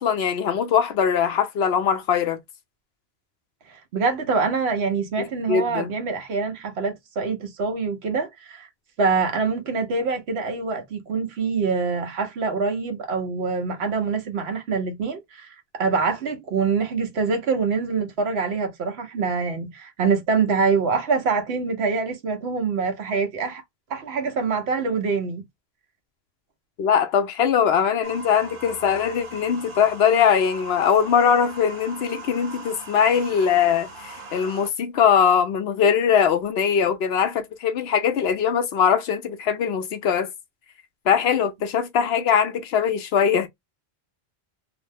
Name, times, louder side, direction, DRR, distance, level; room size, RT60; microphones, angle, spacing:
voice 1, 0.0-2.4 5.2-5.9 26.8-40.3 41.1-43.5, left 7 dB, 80° left, 0.9 m, -21 dB
voice 2, 3.7-8.7 9.0-23.6 23.9-25.4, right 4 dB, 80° right, 1.1 m, -25 dB
sound 1, 28.0-34.7, right 2 dB, 55° right, 1.1 m, -40 dB
2.9 x 2.0 x 3.2 m
omnidirectional pair, 1.1 m